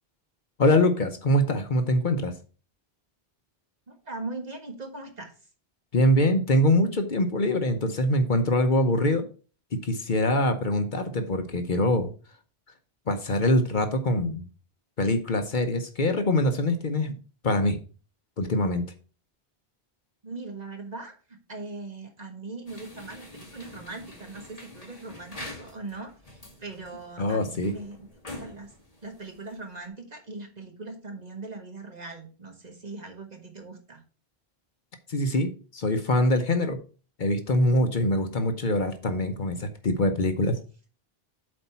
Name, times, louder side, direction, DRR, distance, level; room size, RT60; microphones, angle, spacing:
voice 1, 0.6-2.3 5.9-9.2 9.8-12.1 13.1-14.4 15.0-17.2 17.4-17.8 18.4-18.8 27.2-27.7 35.1-36.8 37.2-40.5, left 1 dB, 55° left, 7 dB, 1.0 m, -24 dB
voice 2, 3.9-5.3 20.2-28.7 29.0-34.0 38.1-38.2, right 3 dB, 40° right, 4 dB, 1.6 m, -40 dB
sound 1, 22.7-29.9, left 1 dB, 40° left, 1.9 m, -45 dB
7.8 x 4.2 x 5.6 m, 0.37 s
omnidirectional pair, 1.0 m